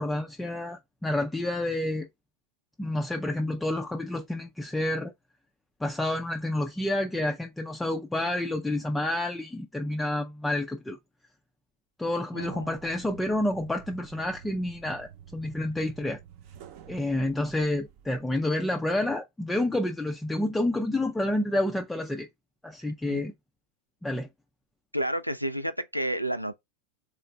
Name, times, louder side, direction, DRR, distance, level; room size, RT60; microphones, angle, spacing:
voice 1, 0.0-2.1 2.8-5.1 5.8-11.0 12.0-16.2 16.9-22.3 22.6-23.3 24.0-24.3, left 1 dB, 5° left, 0.4 m, -29 dB
voice 2, 12.3-12.7 23.1-23.2 24.9-26.6, right 1 dB, 90° right, 0.5 m, -30 dB
sound 1, 12.5-18.3, right 9 dB, 45° right, 0.8 m, -50 dB
3.7 x 3.3 x 4.0 m
figure-of-eight pair, 90°, 0 cm